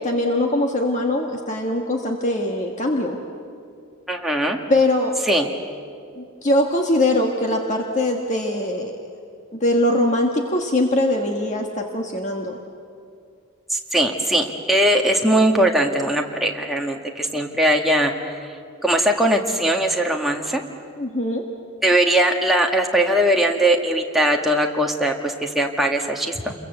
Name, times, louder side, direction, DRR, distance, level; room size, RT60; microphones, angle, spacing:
voice 1, 0.0-3.2 4.7-5.1 6.2-9.0 9.5-12.6 21.0-21.4, left 1 dB, 35° left, 2 dB, 1.5 m, -22 dB
voice 2, 4.1-4.6 5.3-5.5 13.7-18.3 18.8-20.6 21.8-26.5, right 1 dB, ahead, 0 dB, 1.7 m, -20 dB
28.5 x 22.5 x 8.0 m, 2.4 s
head